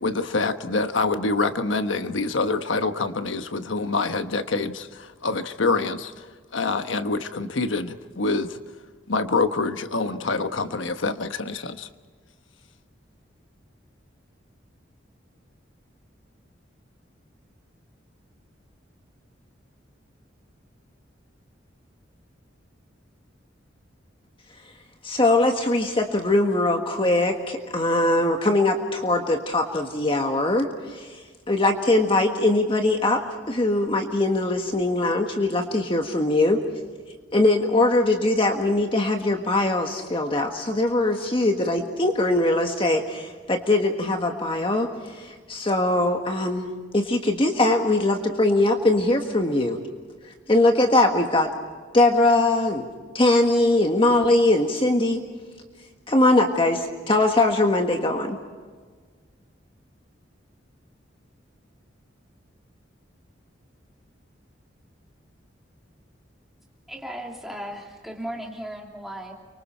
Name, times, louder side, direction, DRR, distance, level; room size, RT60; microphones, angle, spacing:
voice 1, 0.0-6.1 6.5-8.6 9.1-11.9, left 3 dB, 90° left, 9 dB, 1.2 m, -26 dB
voice 2, 25.0-31.1 31.5-33.2 33.5-36.6 37.3-49.8 50.5-51.5 51.9-52.8 53.1-55.2 56.1-58.4, left 2 dB, 30° left, 3 dB, 1.6 m, -21 dB
voice 3, 66.9-69.3, equal, ahead, -1 dB, 3.0 m, -36 dB
30.0 x 24.5 x 4.4 m, 1.5 s
head